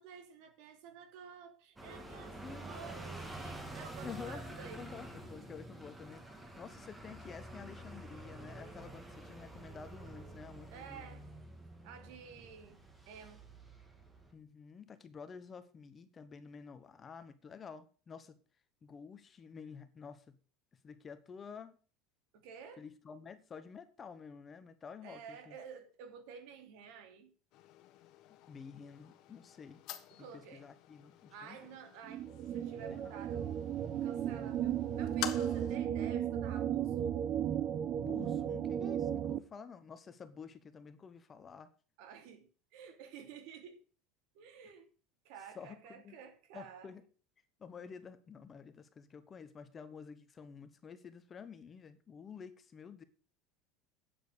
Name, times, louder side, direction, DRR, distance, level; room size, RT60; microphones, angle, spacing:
voice 1, 0.0-4.9 10.7-11.2 11.8-13.4 22.3-22.8 25.0-27.3 30.1-30.6 31.3-33.5 34.0-37.2 42.0-43.8 44.3-44.9 45.2-46.9, right 7 dB, 65° right, 2.9 m, -52 dB
sound 1, 1.8-14.3, right 2 dB, 10° right, 2.4 m, -48 dB
voice 2, 2.4-3.7 4.0-4.4 4.7-11.1 14.3-18.4 18.8-20.4 20.8-21.8 22.8-25.6 28.5-29.8 30.2-31.6 32.7-33.1 38.0-41.7 45.5-46.2 46.5-47.0 47.6-53.0, left 6 dB, 25° left, 1.1 m, -50 dB
sound 2, 27.5-35.8, left 13 dB, 55° left, 1.4 m, -48 dB
sound 3, 32.0-39.4, right 10 dB, 40° right, 0.8 m, -35 dB
9.0 x 7.7 x 6.7 m
supercardioid pair, 140°, 0 cm